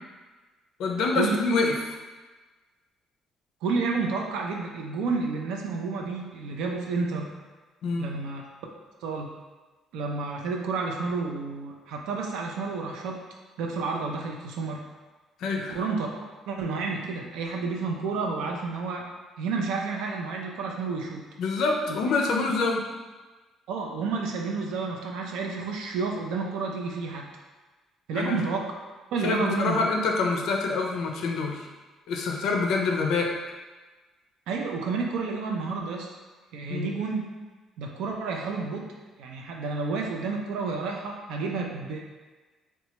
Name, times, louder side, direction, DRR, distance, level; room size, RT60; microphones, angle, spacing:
voice 1, 0.8-1.7 7.8-8.1 15.4-15.8 21.4-22.8 28.1-28.4 29.2-31.6 32.1-33.3 36.7-36.9, left 3 dB, 60° left, 1 dB, 0.4 m, -26 dB
voice 2, 3.6-7.3 8.0-8.4 9.0-9.3 9.9-13.2 13.6-14.8 15.5-16.1 16.5-19.1 19.4-21.2 21.9-22.0 22.6-22.7 23.7-27.3 28.1-28.7 29.1-29.9 34.5-36.1 36.5-37.3 37.8-38.9 39.2-42.0, right 4 dB, 85° right, 1 dB, 0.4 m, -30 dB
2.8 x 2.2 x 4.1 m, 1.3 s
cardioid pair, 180°, 0 cm